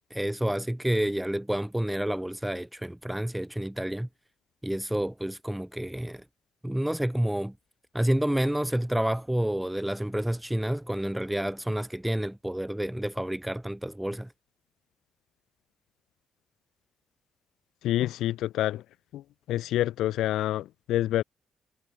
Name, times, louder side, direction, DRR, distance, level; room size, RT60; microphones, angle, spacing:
voice 1, 0.1-4.1 4.6-6.2 6.6-7.5 7.9-14.3, right 1 dB, 5° right, 2.9 m, -29 dB
voice 2, 17.8-18.8 19.1-19.2 19.5-21.2, left 14 dB, 85° left, 2.2 m, -27 dB
cardioid pair, 90°, 0 cm